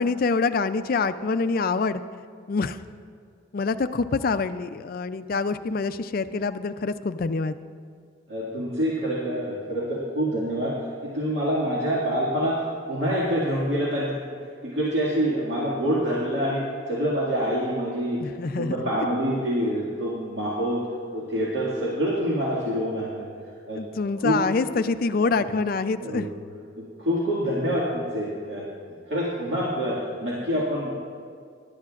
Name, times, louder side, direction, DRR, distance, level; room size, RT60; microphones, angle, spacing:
voice 1, 0.0-2.0 2.5-2.8 3.5-7.5 18.2-18.8 23.8-26.3, left 4 dB, 45° left, 11 dB, 0.4 m, -25 dB
voice 2, 8.3-10.7 11.0-12.6 12.9-14.2 14.6-18.2 18.6-20.8 21.1-23.3 23.7-23.8 24.2-24.4 26.0-26.3 26.8-28.7 29.1-30.9, equal, 60° right, -8 dB, 2.1 m, -26 dB
21.0 x 11.5 x 2.5 m, 2.3 s
head